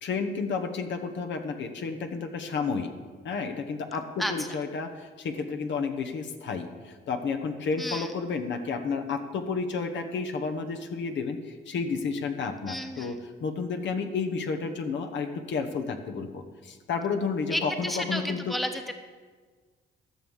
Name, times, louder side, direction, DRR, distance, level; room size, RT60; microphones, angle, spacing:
voice 1, 0.0-2.9 3.2-11.4 11.7-18.6, left 5 dB, 65° left, 5 dB, 1.2 m, -31 dB
voice 2, 7.8-8.1 12.7-13.1 17.5-18.9, equal, ahead, 6 dB, 1.1 m, -32 dB
13.0 x 6.4 x 7.2 m, 1.5 s
cardioid pair, 90°, 20 cm